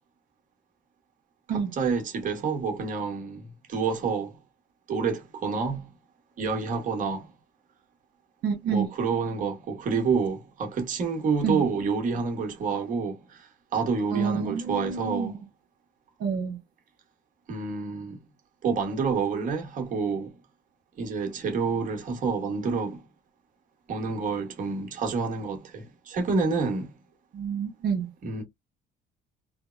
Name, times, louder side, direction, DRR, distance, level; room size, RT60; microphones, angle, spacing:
voice 1, 1.5-4.4 4.9-5.9 6.4-7.3 8.7-15.4 17.5-18.2 18.6-20.3 21.0-23.0 23.9-26.9 28.2-28.4, right 5 dB, 50° right, 1.3 m, -28 dB
voice 2, 8.4-8.9 11.4-11.7 14.1-15.3 16.2-16.6 27.3-28.1, right 6 dB, 70° right, 1.0 m, -28 dB
3.3 x 2.1 x 2.4 m
cardioid pair, 110°, 17 cm